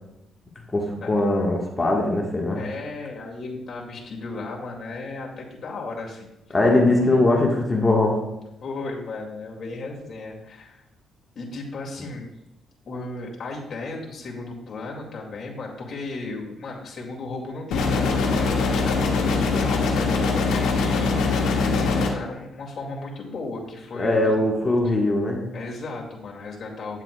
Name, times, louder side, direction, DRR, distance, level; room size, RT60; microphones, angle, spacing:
voice 1, 0.7-2.6 6.5-8.2 24.0-25.5, left 2 dB, 25° left, 0 dB, 1.4 m, -21 dB
voice 2, 2.5-6.6 8.6-10.8 11.4-12.3 12.9-24.3 24.8-24.9 25.5-27.0, left 3 dB, 50° left, -2 dB, 2.1 m, -35 dB
sound 1, 17.7-22.1, left 4 dB, 85° left, 1.3 m, -22 dB
9.3 x 7.4 x 2.3 m, 0.91 s
cardioid pair, 90°, 0 cm